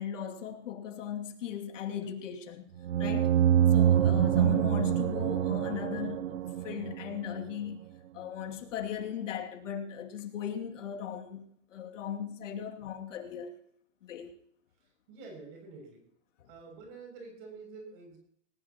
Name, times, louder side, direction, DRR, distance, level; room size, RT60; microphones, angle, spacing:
voice 1, 0.0-2.7 3.0-3.4 3.7-7.9 8.1-13.5 14.0-14.3 16.4-16.5, left 9 dB, 75° left, 2.7 m, -38 dB
sound 1, 2.8-7.4, right 10 dB, 75° right, 1.0 m, -26 dB
voice 2, 15.1-16.0 16.5-18.2, right 4 dB, 45° right, 7.0 m, -47 dB
19.0 x 19.0 x 3.0 m
supercardioid pair, 150°, 37 cm